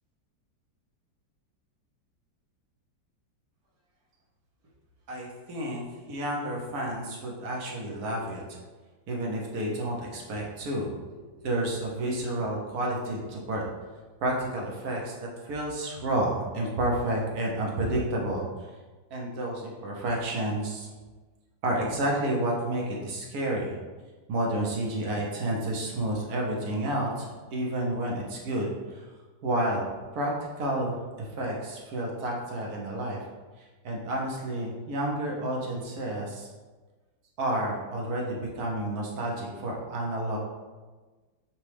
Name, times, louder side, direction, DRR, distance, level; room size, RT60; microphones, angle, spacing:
voice 1, 5.1-8.4 9.1-13.7 14.2-15.1 15.4-18.5 19.1-20.9 21.6-23.8 24.3-29.1 29.4-29.8 30.1-30.3 30.6-33.2 33.6-36.5 37.4-40.4, right 1 dB, 65° right, -2 dB, 1.1 m, -30 dB
5.9 x 2.2 x 3.2 m, 1.3 s
omnidirectional pair, 2.1 m